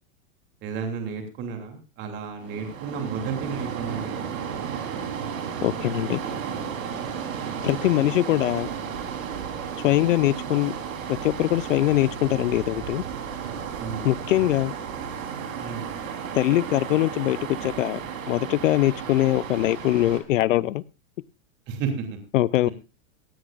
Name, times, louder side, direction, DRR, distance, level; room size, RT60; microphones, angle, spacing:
voice 1, 0.6-4.2 13.8-14.1 15.6-15.9 21.7-22.2 22.6-22.7, right 6 dB, 25° right, 5 dB, 2.8 m, -32 dB
sound 1, 2.4-20.2, right 7 dB, 75° right, 3.8 m, -33 dB
voice 2, 5.6-6.2 7.6-8.7 9.8-10.7 11.1-13.0 14.0-14.7 16.3-18.0 18.3-20.8 22.3-22.7, left 15 dB, 65° left, 20 dB, 0.7 m, -22 dB
18.0 x 16.0 x 2.4 m, 0.28 s
supercardioid pair, 170°, 40 cm